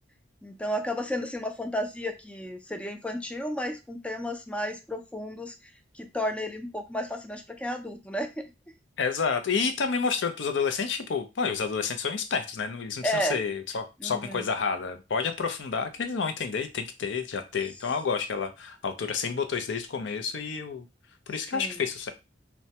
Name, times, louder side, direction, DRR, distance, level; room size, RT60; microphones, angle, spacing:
voice 1, 0.4-5.5 5.9-8.5 13.0-13.4 14.0-14.5 21.5-21.8, equal, 5° left, 6 dB, 0.4 m, -32 dB
voice 2, 9.0-20.9 21.3-22.1, left 5 dB, 85° left, 7 dB, 0.5 m, -29 dB
3.2 x 2.1 x 2.8 m, 0.26 s
head